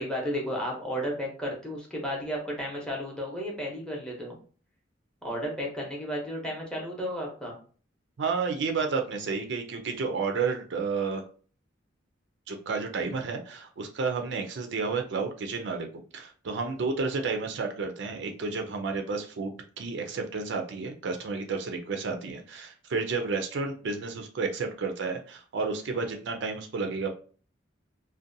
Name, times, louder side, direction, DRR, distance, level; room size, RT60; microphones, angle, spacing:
voice 1, 0.0-4.4 5.2-7.5, equal, 5° left, -2 dB, 0.7 m, -33 dB
voice 2, 8.2-11.2 12.5-15.9 16.1-27.1, right 4 dB, 60° right, 4 dB, 0.4 m, -31 dB
2.6 x 2.2 x 2.5 m, 0.41 s
head